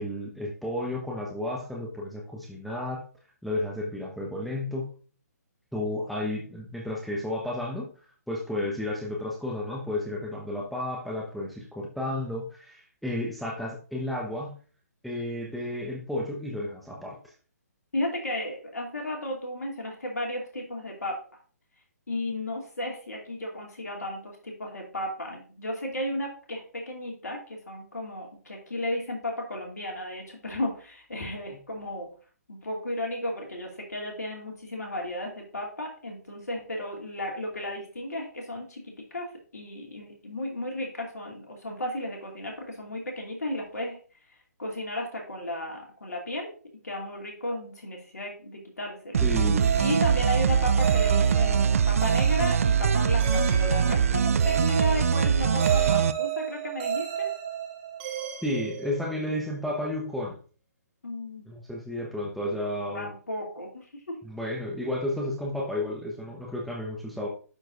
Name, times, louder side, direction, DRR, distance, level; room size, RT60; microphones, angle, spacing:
voice 1, 0.0-3.0 3.4-4.9 5.7-7.9 8.3-14.6 15.0-17.2 49.2-49.7 58.4-60.4 61.5-63.1 64.2-67.3, left 1 dB, ahead, -3 dB, 1.1 m, -32 dB
voice 2, 17.9-21.2 22.1-32.1 32.5-44.0 44.3-46.5 46.8-49.2 49.8-57.3 61.0-61.4 62.9-64.2, left 1 dB, 75° left, 0 dB, 2.6 m, -34 dB
sound 1, 49.1-56.1, right 7 dB, 55° right, 0.4 m, -23 dB
sound 2, 49.6-59.4, right 9 dB, 35° right, 1.7 m, -32 dB
11.5 x 4.6 x 2.6 m, 0.38 s
figure-of-eight pair, 135°, 9 cm